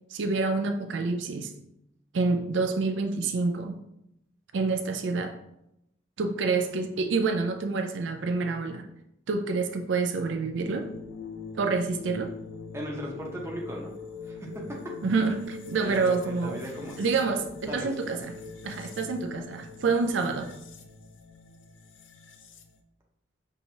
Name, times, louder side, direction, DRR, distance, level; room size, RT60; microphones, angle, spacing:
voice 1, 0.1-1.5 2.1-3.8 4.5-5.3 6.2-8.8 9.3-10.9 11.5-12.3 15.0-16.6 17.0-18.3 18.6-20.5, right 4 dB, 75° right, 6 dB, 0.4 m, -27 dB
sound 1, 10.5-22.8, left 4 dB, 75° left, 0.4 m, -43 dB
voice 2, 12.7-13.9 14.2-15.0 15.8-17.4 17.7-17.9, equal, 15° right, -1 dB, 0.7 m, -37 dB
5.7 x 2.9 x 2.7 m, 0.81 s
head